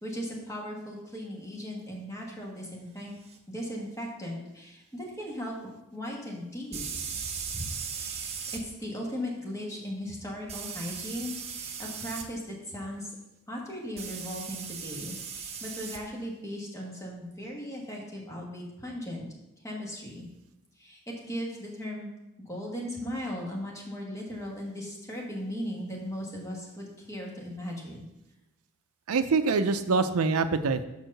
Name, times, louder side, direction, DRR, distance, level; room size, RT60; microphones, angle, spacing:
voice 1, 0.0-3.1 3.5-6.8 7.5-7.7 7.9-13.2 13.5-19.3 19.6-20.2 20.8-22.1 22.4-28.1, equal, 15° left, -2 dB, 1.3 m, -37 dB
sound 1, 3.3-3.4 6.7-8.6 10.5-12.3 14.0-16.0, right 6 dB, 30° right, 0.6 m, -37 dB
voice 2, 29.1-30.8, right 4 dB, 80° right, 10 dB, 0.5 m, -25 dB
5.5 x 4.7 x 6.4 m, 0.93 s
head